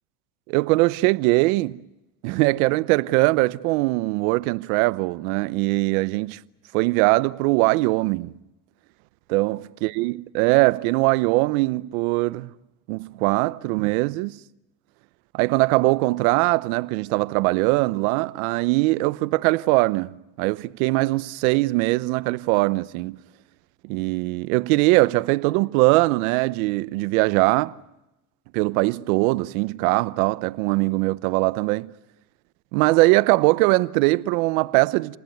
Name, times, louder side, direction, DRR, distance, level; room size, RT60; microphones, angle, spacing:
voice 1, 0.5-1.8 2.2-6.4 6.7-8.3 9.3-12.5 12.9-14.4 15.3-23.2 23.8-27.8 28.5-31.9 32.7-35.2, right 22 dB, 75° right, 0.9 m, -21 dB
29.0 x 19.5 x 9.3 m
supercardioid pair, 100°, 42 cm